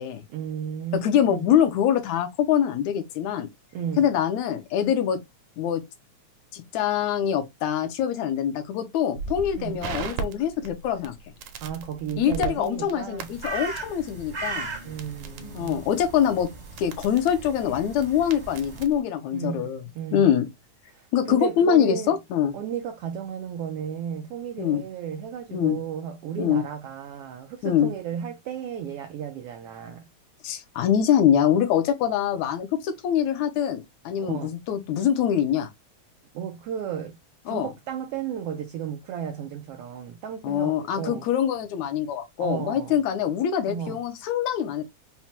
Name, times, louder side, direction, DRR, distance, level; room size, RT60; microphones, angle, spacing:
voice 1, 0.3-1.5 3.7-4.1 9.5-9.9 11.6-13.3 14.8-15.8 19.3-20.4 20.9-22.2 22.5-30.1 34.2-34.5 36.3-37.2 37.5-41.3 42.4-43.0 43.7-44.0, right 8 dB, 90° right, 1.3 m, -34 dB
voice 2, 0.9-3.5 4.0-5.2 5.6-5.8 6.5-11.1 12.2-14.7 15.6-16.5 16.8-19.8 20.1-20.5 21.1-22.5 24.6-24.8 25.5-25.8 26.4-26.6 27.6-27.9 30.4-35.7 37.5-37.7 40.4-44.9, left 9 dB, 80° left, 2.0 m, -24 dB
Crackle, 9.1-19.0, right 6 dB, 75° right, 1.7 m, -39 dB
sound 1, 13.2-18.8, right 3 dB, 40° right, 0.7 m, -38 dB
5.7 x 2.1 x 2.9 m
omnidirectional pair, 3.4 m